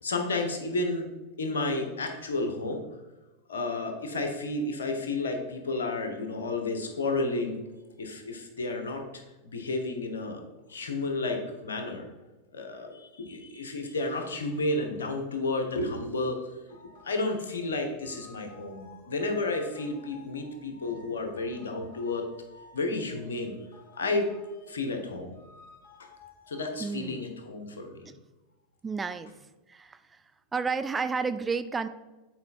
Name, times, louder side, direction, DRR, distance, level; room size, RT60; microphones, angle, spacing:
voice 1, 0.0-1.1 1.4-2.8 3.5-7.6 8.0-9.0 9.4-10.4 10.7-12.1 12.5-16.8 17.0-22.3 22.7-23.6 24.0-24.3 24.7-25.4 26.0-26.1 26.5-28.1, left 2 dB, 80° left, 5 dB, 1.3 m, -31 dB
sound 1, 16.7-26.6, left 2 dB, 65° left, 1.5 m, -55 dB
voice 2, 26.8-27.3 28.8-29.3 29.7-30.2 30.5-31.9, right 5 dB, 20° right, 12 dB, 0.4 m, -31 dB
8.3 x 4.4 x 4.3 m, 1.1 s
hypercardioid pair, 95°, 0 cm